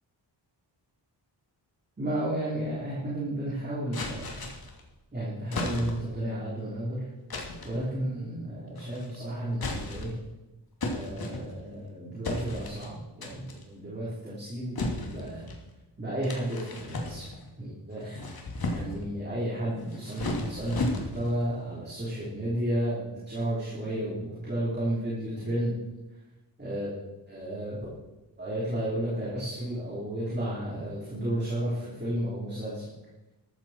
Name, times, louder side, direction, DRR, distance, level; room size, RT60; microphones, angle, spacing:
voice 1, 2.0-4.5 5.1-7.1 7.6-10.1 10.8-15.5 16.0-17.3 17.6-18.2 18.7-25.7 26.6-26.9 27.3-27.8 28.4-32.9, right 1 dB, 25° right, -7 dB, 4.1 m, -32 dB
sound 1, 3.9-4.8 5.5-6.2 7.3-7.8 8.8-9.2 9.5-10.3 10.8-11.8 12.2-12.9 13.2-13.6 14.8-15.6 16.2-17.5 18.0-19.1 19.8-21.4, left 2 dB, 55° left, 2.6 m, -34 dB
14.0 x 13.5 x 4.6 m, 1.0 s
wide cardioid pair, 165°, 44 cm